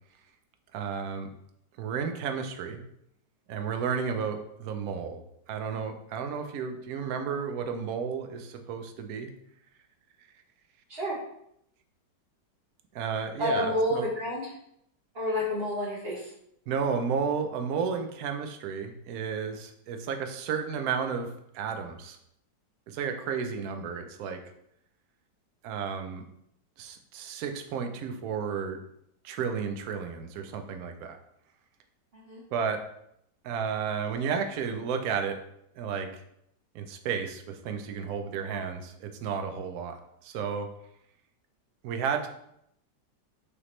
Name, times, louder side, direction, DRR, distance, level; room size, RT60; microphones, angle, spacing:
voice 1, 0.7-1.3 1.8-2.8 3.5-5.2 5.5-9.3 12.9-14.1 16.7-21.3 21.5-22.2 22.9-24.4 25.6-26.2 26.8-28.8 29.2-31.2 32.5-32.8 33.4-35.4 35.8-36.1 36.7-40.0 40.2-40.7 41.8-42.3, right 6 dB, 70° right, 6 dB, 0.9 m, -32 dB
voice 2, 13.4-14.5 15.1-16.2 32.3-32.4, left 1 dB, 40° right, -5 dB, 1.1 m, -29 dB
5.0 x 2.9 x 3.1 m, 0.75 s
omnidirectional pair, 1.9 m